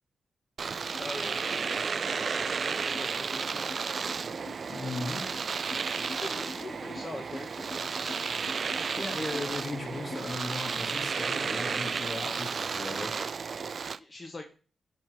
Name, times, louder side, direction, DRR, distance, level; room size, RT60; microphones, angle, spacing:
Domestic sounds home sounds, 0.6-14.0, right 5 dB, 60° right, 0.3 m, -33 dB
sound 1, 0.9-1.1 1.3-10.5, left 2 dB, 70° left, 1.6 m, -45 dB
voice 1, 1.0-1.9 2.1-3.8 5.9-8.3 13.6-14.5, left 2 dB, 35° left, 4 dB, 1.2 m, -43 dB
Water / Boiling, 1.0-6.1, right 2 dB, 20° right, 0.9 m, -48 dB
voice 2, 4.7-5.2 9.0-13.1, left 2 dB, 50° left, 1 dB, 2.7 m, -37 dB
10.5 x 4.5 x 4.0 m, 0.39 s
cardioid pair, 55°, 0 cm